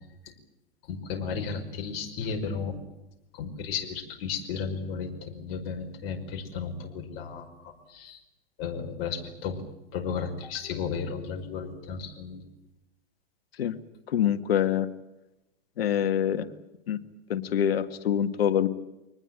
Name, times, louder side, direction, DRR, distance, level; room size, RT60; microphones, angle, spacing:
voice 1, 0.9-2.8 3.3-8.2 8.6-9.6 9.9-12.4, left 6 dB, 45° left, 4 dB, 5.4 m, -34 dB
voice 2, 14.1-14.9 15.8-16.5 16.9-17.0 17.3-18.7, left 9 dB, 75° left, 12 dB, 1.8 m, -25 dB
24.5 x 20.0 x 9.0 m, 0.95 s
hypercardioid pair, 125°, 30 cm